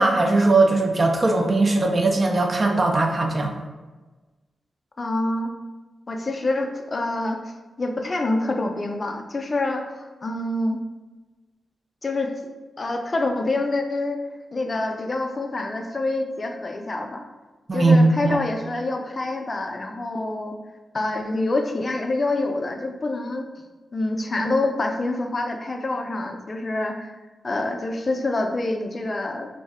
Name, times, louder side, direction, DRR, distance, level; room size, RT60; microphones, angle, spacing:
voice 1, 0.0-3.6 17.7-18.4, right 2 dB, 45° right, 2 dB, 0.5 m, -19 dB
voice 2, 5.0-5.5 6.1-10.8 12.0-12.4 12.8-14.2 14.5-17.2 17.7-20.6 20.9-23.5 23.9-27.1 27.4-29.5, left 2 dB, 45° left, 4 dB, 0.4 m, -26 dB
2.6 x 2.1 x 3.4 m, 1.2 s
supercardioid pair, 45°, 0 cm